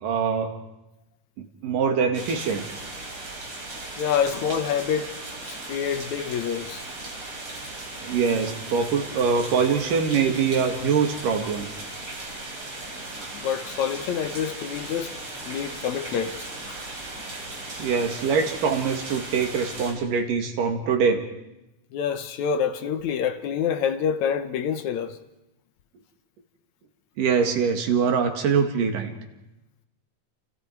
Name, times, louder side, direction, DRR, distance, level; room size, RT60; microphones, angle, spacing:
voice 1, 0.0-0.6 1.4-2.7 8.0-11.7 17.8-21.3 27.2-29.1, right 6 dB, 85° right, 3.6 m, -23 dB
sound 1, 2.1-19.9, right 2 dB, 40° right, 5.3 m, -37 dB
voice 2, 4.0-5.1 5.5-6.8 13.3-15.1 15.5-16.8 21.9-25.2, left 7 dB, 70° left, 2.1 m, -27 dB
29.0 x 28.5 x 4.7 m
omnidirectional pair, 3.8 m